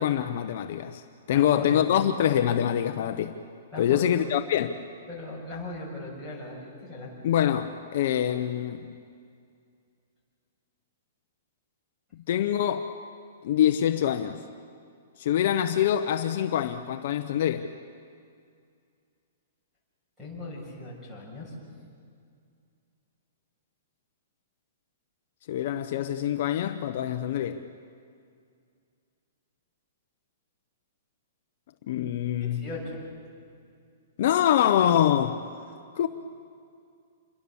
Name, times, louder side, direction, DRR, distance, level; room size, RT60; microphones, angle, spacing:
voice 1, 0.0-3.3 3.8-4.7 7.2-8.8 12.3-12.9 13.4-14.4 15.2-17.7 25.5-27.6 31.9-32.6 34.2-35.4 36.0-36.1, left 10 dB, 45° left, 0.8 m, -25 dB
voice 2, 1.3-1.9 3.7-4.3 5.1-7.1 20.2-21.5 32.4-33.0, left 2 dB, 5° right, 6.6 m, -38 dB
27.5 x 22.0 x 7.2 m
hypercardioid pair, 175°, 0 cm